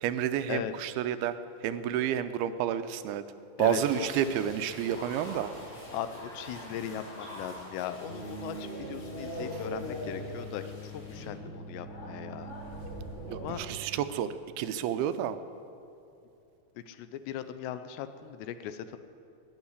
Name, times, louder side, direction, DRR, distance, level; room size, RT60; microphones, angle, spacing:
voice 1, 0.0-1.4 1.6-3.2 3.6-5.5 13.3-14.3 14.6-15.4, right 10 dB, 80° right, 11 dB, 2.3 m, -30 dB
voice 2, 3.6-4.1 5.9-12.5 13.4-13.6 16.9-19.0, left 10 dB, 85° left, 10 dB, 2.8 m, -38 dB
sound 1, 3.6-11.3, equal, 70° left, 6.5 m, -46 dB
sound 2, 8.0-13.8, equal, 55° left, 6.0 m, -40 dB
20.5 x 7.2 x 9.8 m, 2.6 s
omnidirectional pair, 5.0 m